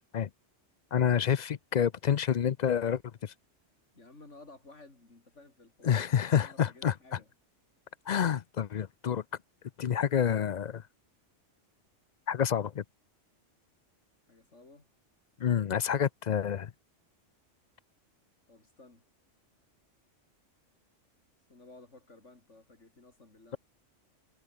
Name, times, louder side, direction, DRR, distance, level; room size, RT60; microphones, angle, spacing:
voice 1, 0.9-3.3 5.8-6.9 8.1-9.2 9.8-10.8 12.3-12.8 15.4-16.7, left 8 dB, 50° left, 0.5 m, -28 dB
voice 2, 3.9-7.3 14.3-14.9 18.5-19.0 21.5-23.6, left 2 dB, 75° left, 4.5 m, -55 dB
omnidirectional pair, 1.2 m